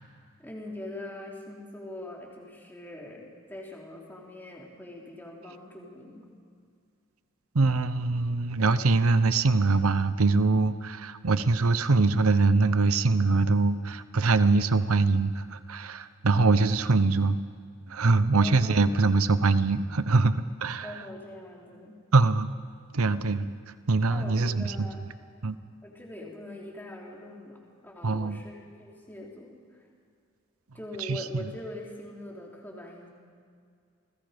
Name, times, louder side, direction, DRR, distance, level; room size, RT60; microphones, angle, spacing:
voice 1, 0.4-6.3 18.4-18.9 20.8-22.0 24.1-25.0 25.8-29.5 30.7-33.1, left 1 dB, 10° left, -2 dB, 3.5 m, -42 dB
voice 2, 7.5-17.4 17.9-20.9 22.1-22.5 22.9-23.5 23.9-24.9 25.4-25.6 28.0-28.4 31.0-31.5, right 3 dB, 90° right, 13 dB, 0.8 m, -23 dB
29.5 x 21.0 x 5.2 m, 2.2 s
head